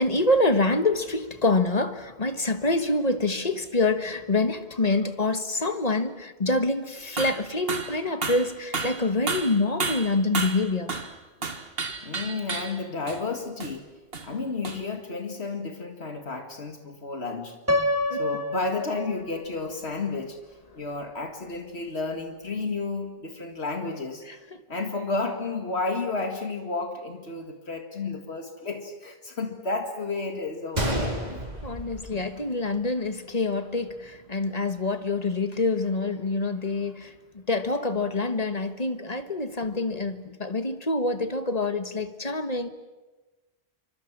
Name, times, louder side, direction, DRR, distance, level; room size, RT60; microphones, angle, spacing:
voice 1, 0.0-10.9 18.1-18.2 24.5-24.6 31.6-37.1 37.5-42.7, left 2 dB, 40° left, 1.6 m, -26 dB
sound 1, 7.2-7.4 7.7-8.0 8.2-11.2 11.4-12.8 13.1-13.2 13.6-13.7 14.1-14.3 14.6-14.8, right 4 dB, 60° right, 1.8 m, -31 dB
voice 2, 12.0-13.9 14.2-17.6 18.1-20.4 20.7-24.3 24.7-31.4, left 3 dB, 75° left, 2.3 m, -32 dB
Piano, 17.7-19.6, left 1 dB, 15° right, 1.5 m, -27 dB
Gunshot gunfire, 30.8-32.8 33.1-33.2 33.8-34.1, equal, 40° right, 3.4 m, -30 dB
27.0 x 25.0 x 7.4 m
omnidirectional pair, 1.1 m